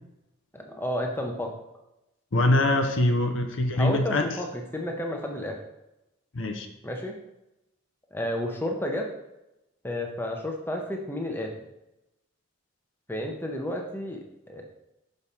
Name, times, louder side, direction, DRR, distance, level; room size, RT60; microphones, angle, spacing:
voice 1, 0.5-1.5 3.8-5.6 6.8-7.1 8.1-9.1 9.8-11.5 13.1-14.2 14.5-14.6, left 1 dB, 10° left, 2 dB, 0.7 m, -31 dB
voice 2, 2.3-4.2 6.3-6.7, left 2 dB, 70° left, 6 dB, 0.8 m, -23 dB
6.1 x 5.3 x 4.1 m, 0.91 s
head